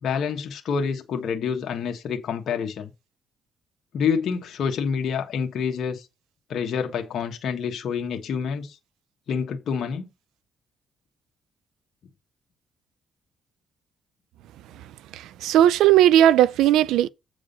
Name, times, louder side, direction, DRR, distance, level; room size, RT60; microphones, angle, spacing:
voice 1, 0.0-2.9 3.9-6.1 6.5-8.8 9.3-10.1, left 6 dB, 65° left, 1.5 m, -27 dB
voice 2, 15.1-17.1, right 12 dB, 90° right, 0.4 m, -17 dB
8.3 x 4.9 x 5.5 m
cardioid pair, 90°, 0 cm